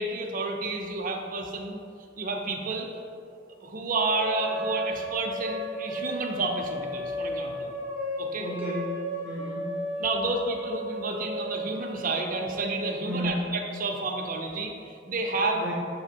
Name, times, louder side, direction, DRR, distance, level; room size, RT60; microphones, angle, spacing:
voice 1, 0.0-1.8 2.2-2.9 3.6-7.7 8.2-8.5 10.0-15.7, right 3 dB, 45° right, 2 dB, 0.6 m, -30 dB
sound 1, 4.0-13.0, left 1 dB, 45° left, 1.3 m, -35 dB
voice 2, 8.4-9.8 13.0-13.5 15.5-15.7, equal, 10° right, -6 dB, 0.7 m, -33 dB
7.3 x 3.0 x 4.4 m, 2.5 s
head